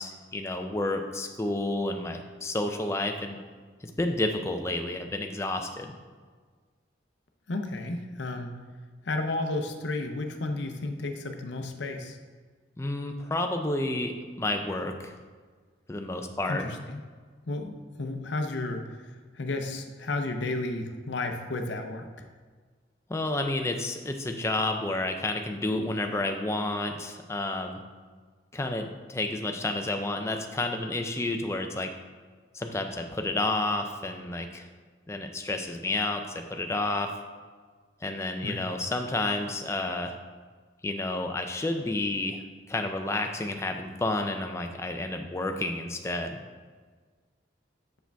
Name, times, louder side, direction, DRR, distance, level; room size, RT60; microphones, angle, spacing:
voice 1, 0.0-3.4 3.8-5.9 12.8-15.1 15.9-16.6 23.1-27.8 28.5-31.9 32.5-34.7 35.1-37.1 38.0-40.1 40.8-42.4 42.7-46.4, left 2 dB, 15° left, 4 dB, 0.4 m, -30 dB
voice 2, 7.5-8.5 9.1-12.2 16.5-17.0 17.5-18.8 19.4-22.0 38.4-38.7, left 2 dB, 70° left, 5 dB, 0.6 m, -32 dB
7.4 x 4.8 x 3.4 m, 1.5 s
head